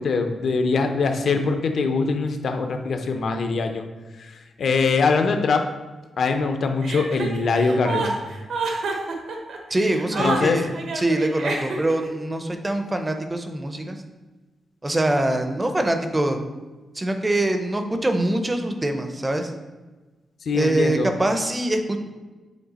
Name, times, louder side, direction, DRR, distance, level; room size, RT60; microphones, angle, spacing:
voice 1, 0.0-3.9 4.2-5.7 6.2-8.1 10.2-10.6 20.5-21.1, left 4 dB, 55° left, 6 dB, 0.6 m, -22 dB
Chuckle chortle, 6.8-12.1, right 3 dB, 75° right, 0.9 m, -28 dB
voice 2, 9.7-10.7 11.0-14.0 14.8-16.4 17.0-19.5 20.5-22.0, right 1 dB, 15° right, 6 dB, 0.5 m, -24 dB
7.2 x 3.4 x 4.0 m, 1.2 s
wide cardioid pair, 155°, 0 cm